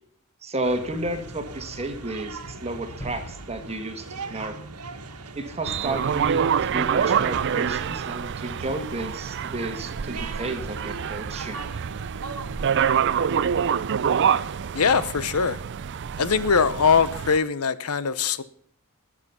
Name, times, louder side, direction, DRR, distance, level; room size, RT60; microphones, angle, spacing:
voice 1, 0.4-4.6 5.3-11.6, right 2 dB, 30° right, 1.7 m, -32 dB
sound 1, 0.6-13.4, right 3 dB, 90° right, 1.6 m, -40 dB
sound 2, 3.0-5.8, equal, 25° left, 4.8 m, -44 dB
sound 3, 5.6-17.4, right 7 dB, 55° right, 0.4 m, -26 dB
voice 2, 14.7-15.6 16.2-18.4, left 5 dB, 80° left, 0.8 m, -22 dB
21.0 x 7.5 x 5.6 m
head